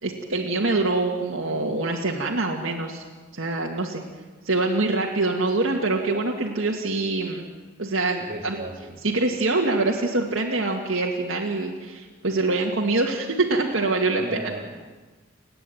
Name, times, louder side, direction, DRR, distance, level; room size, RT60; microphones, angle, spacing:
voice 1, 0.0-3.0 3.3-4.0 4.5-7.4 7.8-8.5 9.0-14.4, right 2 dB, 65° right, -1 dB, 2.1 m, -24 dB
voice 2, 8.2-8.9 14.1-14.7, right 1 dB, 40° right, 3 dB, 3.2 m, -35 dB
30.0 x 10.0 x 9.4 m, 1.3 s
head